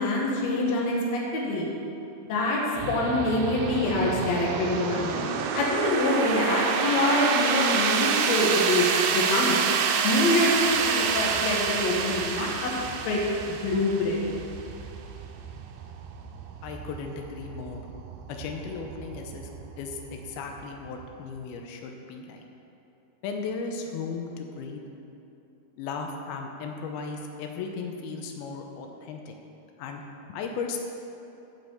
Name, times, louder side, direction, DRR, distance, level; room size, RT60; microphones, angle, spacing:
voice 1, 0.0-1.7 2.3-2.6 2.9-5.3 5.5-9.6 10.0-12.7 13.0-13.2 13.5-14.3, left 2 dB, 60° left, -3 dB, 2.2 m, -25 dB
sound 1, 2.7-21.4, right 6 dB, 85° right, 2.6 m, -29 dB
voice 2, 16.6-17.8 18.3-19.5 19.8-22.4 23.2-24.8 25.8-29.4 29.8-30.0 30.3-30.8, left 5 dB, 90° left, 3 dB, 2.7 m, -36 dB
10.5 x 6.1 x 6.9 m, 2.9 s
omnidirectional pair, 4.3 m